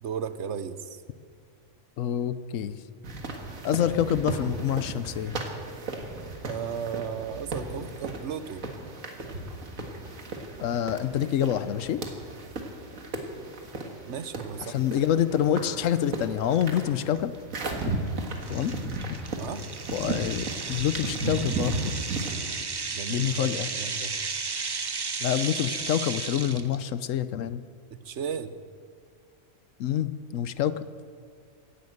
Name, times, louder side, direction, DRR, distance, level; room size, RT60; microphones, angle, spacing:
voice 1, 0.0-1.0 6.4-8.7 14.1-14.7 19.4-19.6 22.9-24.1 28.0-28.6, right 7 dB, 65° right, 12 dB, 1.0 m, -35 dB
voice 2, 2.0-2.8 3.6-5.4 10.6-12.0 14.6-17.3 17.9-18.0 18.5-18.8 19.9-21.9 23.1-23.7 25.2-27.6 29.8-30.7, left 10 dB, 75° left, 14 dB, 1.0 m, -27 dB
sound 1, 3.0-22.4, right 2 dB, 90° right, 2.1 m, -35 dB
sound 2, 16.5-16.6 17.2-17.4 17.8-17.9 18.4-26.8, right 4 dB, 35° right, 0.4 m, -34 dB
17.0 x 11.0 x 7.9 m, 2.1 s
omnidirectional pair, 1.4 m